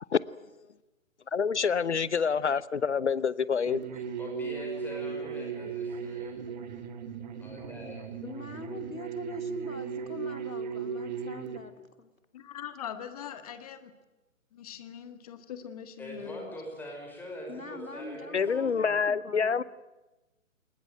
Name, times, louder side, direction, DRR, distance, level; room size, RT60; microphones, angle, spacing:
voice 1, 1.3-3.8 18.3-19.6, left 6 dB, 55° left, 0.8 m, -27 dB
sound 1, 3.7-11.6, right 6 dB, 30° right, 1.9 m, -37 dB
voice 2, 4.2-6.4 7.4-8.1 16.0-18.9, left 1 dB, 5° left, 5.3 m, -43 dB
voice 3, 8.2-12.1 17.5-19.6, left 2 dB, 80° left, 2.8 m, -43 dB
voice 4, 12.3-13.9 14.5-16.5, left 9 dB, 30° left, 1.8 m, -42 dB
22.0 x 20.5 x 9.2 m
figure-of-eight pair, 135°, 40 cm